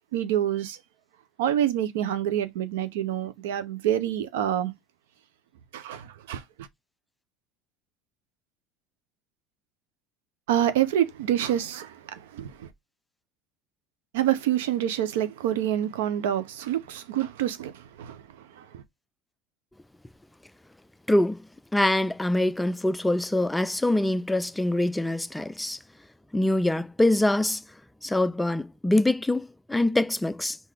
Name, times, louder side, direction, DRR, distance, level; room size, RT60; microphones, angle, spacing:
voice 1, 0.1-0.8 1.4-4.7 5.7-6.4 10.5-12.7 14.1-18.8, right 11 dB, 90° right, 0.7 m, -27 dB
voice 2, 21.1-21.4 21.7-25.8 26.3-27.6 28.0-30.6, left 1 dB, 5° left, 0.3 m, -24 dB
3.9 x 2.6 x 4.7 m
supercardioid pair, 115°, 0 cm